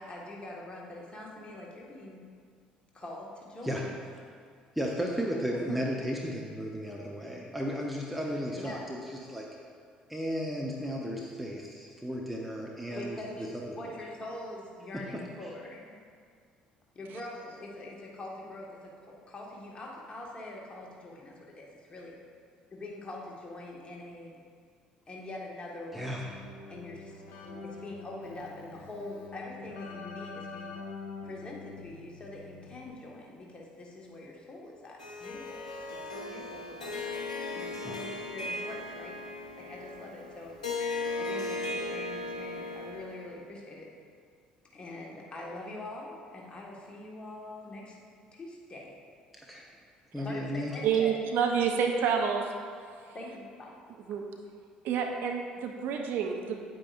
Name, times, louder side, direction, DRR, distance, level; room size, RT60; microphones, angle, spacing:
voice 1, 0.0-2.2 2.9-3.9 5.5-5.8 8.5-8.8 13.0-13.5 13.8-16.0 16.9-22.1 22.7-24.4 25.1-26.2 26.7-30.8 31.2-37.2 37.5-40.6 41.2-43.9 44.7-48.0 48.3-48.9 50.2-51.2 53.1-53.7, left 2 dB, 25° left, -2 dB, 1.6 m, -44 dB
voice 2, 4.7-9.5 10.1-13.8 14.9-15.2 25.9-26.2 37.8-38.0 49.3-49.6 50.1-50.8, equal, ahead, -2 dB, 0.9 m, -34 dB
Keyboard (musical), 25.9-33.2, left 4 dB, 55° left, 1.0 m, -45 dB
Harp, 35.0-43.4, left 2 dB, 80° left, 0.7 m, -37 dB
voice 3, 50.8-52.4 53.1-53.2 54.1-54.3 54.8-56.6, right 7 dB, 55° right, 2 dB, 0.7 m, -28 dB
9.1 x 8.5 x 2.5 m, 2.2 s
figure-of-eight pair, 55°, 4 cm